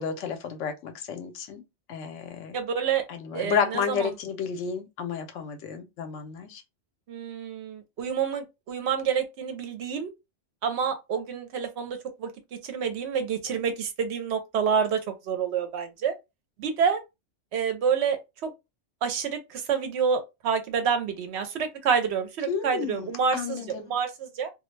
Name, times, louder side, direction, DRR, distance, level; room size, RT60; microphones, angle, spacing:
voice 1, 0.0-1.6 1.9-2.6 3.1-6.6 22.5-23.9, left 6 dB, 85° left, 0.9 m, -31 dB
voice 2, 2.5-3.0 3.3-4.1 7.1-10.1 10.6-16.1 16.6-17.0 17.5-18.5 19.0-24.5, right 6 dB, 70° right, 0.8 m, -28 dB
2.3 x 2.1 x 3.1 m
omnidirectional pair, 1.2 m